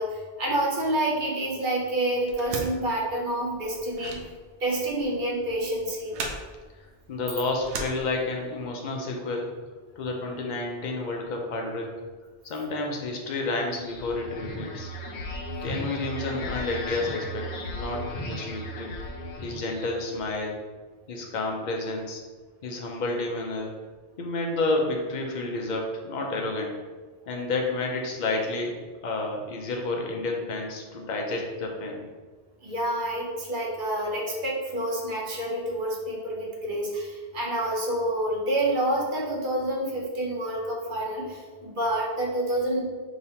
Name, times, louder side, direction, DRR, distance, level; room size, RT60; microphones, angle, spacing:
voice 1, 0.0-4.3 4.6-6.2 32.6-42.8, right 1 dB, 50° right, -3 dB, 1.0 m, -28 dB
sound 1, 2.3-8.6, right 3 dB, 80° right, 0.9 m, -39 dB
voice 2, 7.1-9.5 10.0-11.9 12.4-14.9 15.6-19.0 19.4-20.6 21.1-22.2 22.6-23.7 24.2-26.7 27.3-28.8 29.0-32.1, left 2 dB, 50° left, 0 dB, 0.7 m, -30 dB
sound 2, 13.7-20.3, equal, 80° left, 1.1 m, -36 dB
5.2 x 2.9 x 2.8 m, 1.4 s
omnidirectional pair, 1.1 m